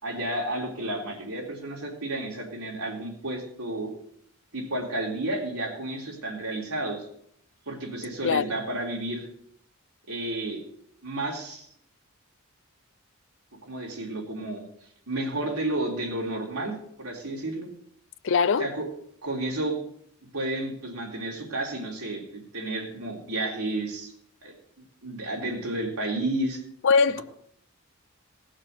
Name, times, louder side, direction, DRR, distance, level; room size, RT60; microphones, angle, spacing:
voice 1, 0.0-3.9 4.5-7.1 7.6-9.3 10.1-10.6 11.0-11.7 13.6-14.6 15.1-17.7 18.6-18.9 19.2-19.8 20.3-24.1 24.4-24.5 25.0-26.6, right 1 dB, 85° right, 3.6 m, -31 dB
voice 2, 18.2-18.7 26.8-27.2, left 5 dB, 60° left, 0.5 m, -21 dB
17.5 x 6.4 x 6.5 m
head